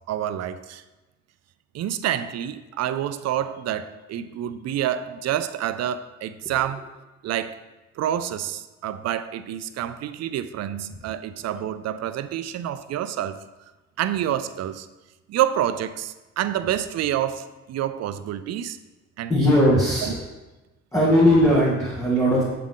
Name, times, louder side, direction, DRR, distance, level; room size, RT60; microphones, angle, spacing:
voice 1, 0.1-0.8 1.7-6.9 7.2-7.6 8.0-13.4 14.0-14.9 15.3-18.8 19.2-19.3 20.0-20.2, right 11 dB, 60° right, 0.4 m, -28 dB
voice 2, 19.3-20.2 20.9-22.5, equal, 10° left, 1.5 m, -18 dB
7.5 x 3.6 x 3.7 m
cardioid pair, 90°, 30 cm